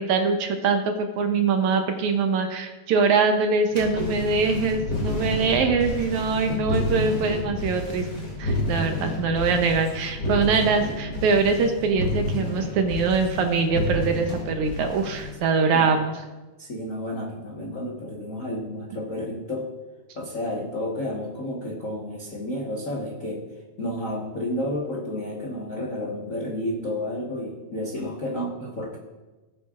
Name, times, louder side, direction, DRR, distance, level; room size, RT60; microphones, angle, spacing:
voice 1, 0.0-8.1 8.4-16.2, right 4 dB, 75° right, 5 dB, 1.9 m, -23 dB
sound 1, 3.7-15.3, left 1 dB, 30° left, 2.7 m, -30 dB
voice 2, 16.6-19.6 20.1-23.4 23.8-29.0, left 1 dB, 60° left, -3 dB, 0.8 m, -31 dB
18.5 x 8.0 x 2.5 m, 1.2 s
omnidirectional pair, 3.8 m